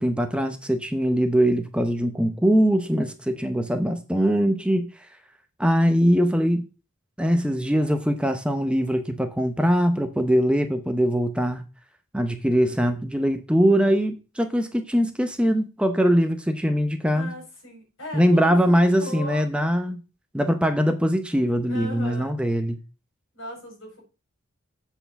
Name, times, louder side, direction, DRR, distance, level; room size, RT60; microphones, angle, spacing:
voice 1, 0.0-5.1 5.6-6.7 7.2-11.6 12.1-17.3 18.1-20.0 20.3-22.8, equal, 5° right, 0.7 m, -22 dB
voice 2, 17.1-19.5 21.6-22.4 23.3-24.0, equal, 70° left, 5.0 m, -38 dB
7.9 x 4.4 x 6.8 m
head